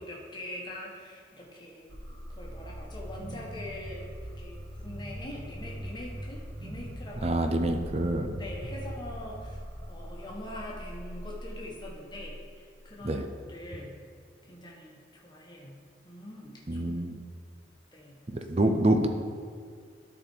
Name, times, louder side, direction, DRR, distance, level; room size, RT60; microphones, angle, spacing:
voice 1, 0.0-1.9 2.3-4.1 4.4-7.4 8.4-9.6 9.9-14.0 14.4-15.8 16.0-17.4 17.9-18.8, left 1 dB, 25° left, -3 dB, 1.3 m, -43 dB
sound 1, 1.9-12.8, equal, 70° right, 1.4 m, -41 dB
voice 2, 7.2-8.3 13.0-13.2 16.7-17.2 18.3-19.1, right 1 dB, 35° right, 6 dB, 0.6 m, -26 dB
12.5 x 4.2 x 4.5 m, 2.1 s
head